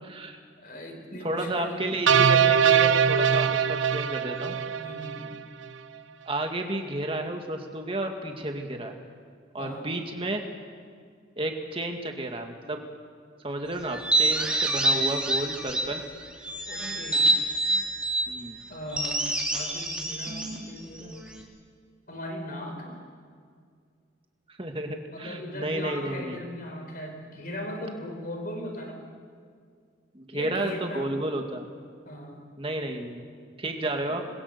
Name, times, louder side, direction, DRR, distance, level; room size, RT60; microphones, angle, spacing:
voice 1, 0.0-0.4 1.2-4.6 6.3-8.9 9.5-10.4 11.4-12.8 13.4-16.0 18.3-18.6 24.5-26.4 30.1-31.7 32.6-33.2 33.6-34.2, right 1 dB, 30° right, 3 dB, 2.1 m, -32 dB
voice 2, 0.6-1.8 4.7-5.3 9.6-9.9 14.8-15.1 16.7-17.3 18.7-19.2 19.5-21.2 22.1-23.0 25.1-29.0 30.3-31.1 32.0-32.5 33.9-34.3, left 1 dB, 45° left, 3 dB, 4.7 m, -38 dB
sound 1, 2.1-5.4, right 7 dB, 80° right, 0.8 m, -22 dB
sound 2, 13.9-16.0 16.4-18.3 18.9-21.4, right 2 dB, 5° right, 2.8 m, -27 dB
27.5 x 21.5 x 6.9 m, 2.1 s
head